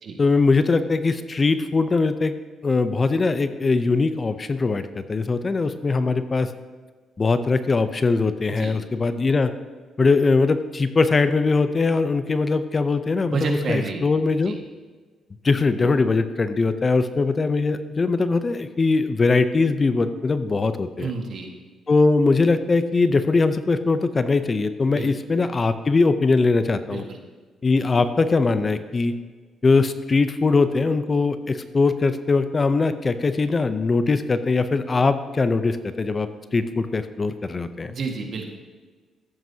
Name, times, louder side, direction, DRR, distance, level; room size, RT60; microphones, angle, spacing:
voice 1, 0.2-2.3 2.6-6.5 7.2-9.5 10.0-14.6 15.4-21.1 21.9-27.1 27.6-29.1 29.6-37.9, left 3 dB, 30° left, 11 dB, 0.6 m, -21 dB
voice 2, 13.3-14.0 14.4-14.6 21.0-21.5 24.9-25.1 26.8-27.2 37.9-38.5, right 4 dB, 60° right, 2 dB, 1.6 m, -29 dB
13.5 x 9.3 x 2.8 m, 1.4 s
cardioid pair, 90°, 0 cm